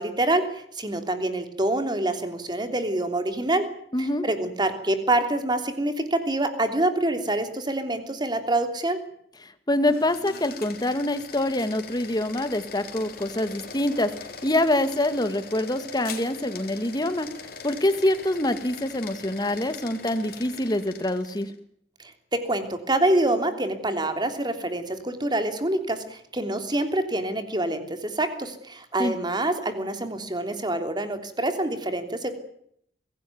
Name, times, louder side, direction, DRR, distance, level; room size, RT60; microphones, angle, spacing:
voice 1, 0.0-3.7 4.0-9.0 22.3-32.3, right 1 dB, 25° right, 8 dB, 3.2 m, -26 dB
voice 2, 3.9-4.3 9.4-14.1 14.4-17.3 17.6-21.5 29.0-29.1, left 1 dB, 25° left, 10 dB, 2.0 m, -25 dB
sound 1, 9.8-21.6, left 5 dB, 60° left, 3.7 m, -42 dB
24.0 x 17.0 x 9.5 m, 0.70 s
head